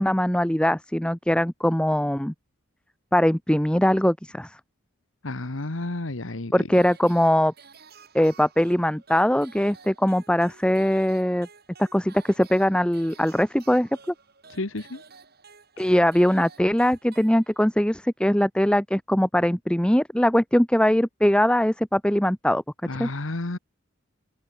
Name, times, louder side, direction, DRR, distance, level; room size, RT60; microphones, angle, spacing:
voice 1, 0.0-2.3 3.1-4.6 6.5-7.5 8.1-11.5 11.8-13.9 15.8-22.6 23.0-23.1, equal, 5° left, 1.0 m, -21 dB
voice 2, 5.2-6.5 14.5-15.0 22.9-23.6, left 2 dB, 70° left, 1.5 m, -31 dB
sound 1, 6.7-17.8, right 5 dB, 50° right, 6.7 m, -52 dB
open air
head